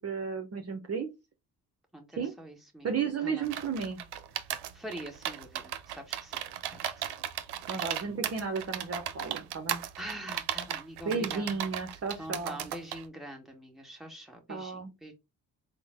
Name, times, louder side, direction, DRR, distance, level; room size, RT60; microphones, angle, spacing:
voice 1, 0.0-1.1 2.2-2.3 2.8-4.0 7.7-9.8 11.1-12.6 14.5-14.9, right 5 dB, 40° right, 4 dB, 0.7 m, -33 dB
voice 2, 1.9-2.9 3.2-3.5 4.4-6.4 6.6-7.2 10.0-11.6 12.2-15.1, right 1 dB, ahead, 1 dB, 1.4 m, -44 dB
sound 1, 3.4-13.0, right 11 dB, 80° right, 0.6 m, -36 dB
3.7 x 2.1 x 3.4 m, 0.23 s
supercardioid pair, 60°, 39 cm